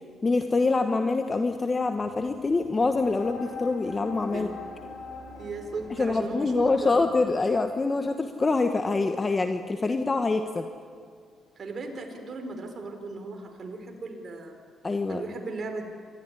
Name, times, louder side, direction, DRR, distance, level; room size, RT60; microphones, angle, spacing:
voice 1, 0.2-4.5 6.0-10.6 14.8-15.2, left 3 dB, 25° left, 6 dB, 1.2 m, -25 dB
sound 1, 1.9-7.4, right 5 dB, 75° right, 7.4 m, -54 dB
sound 2, 3.2-8.7, left 4 dB, 90° left, 7.3 m, -43 dB
voice 2, 5.4-7.0 11.6-14.6 15.1-15.8, right 3 dB, 45° right, 4 dB, 4.3 m, -36 dB
27.0 x 13.5 x 10.0 m, 2.1 s
cardioid pair, 90°, 0 cm